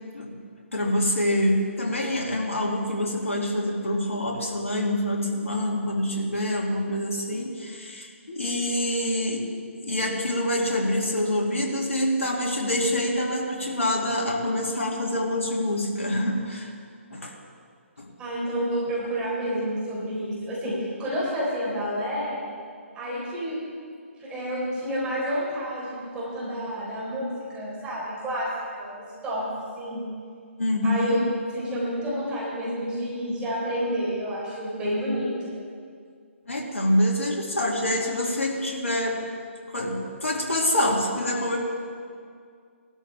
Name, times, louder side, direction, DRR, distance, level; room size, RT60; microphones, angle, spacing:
voice 1, 0.7-9.5 9.8-16.7 17.1-17.3 18.0-18.1 30.6-31.3 36.5-39.2 39.7-41.6, left 1 dB, 75° left, -1 dB, 2.4 m, -26 dB
voice 2, 18.2-22.4 22.9-23.6 24.2-28.5 28.8-30.0 30.8-35.6, equal, 15° right, -7 dB, 4.2 m, -29 dB
18.5 x 12.5 x 3.4 m, 2.2 s
figure-of-eight pair, 140°, 7 cm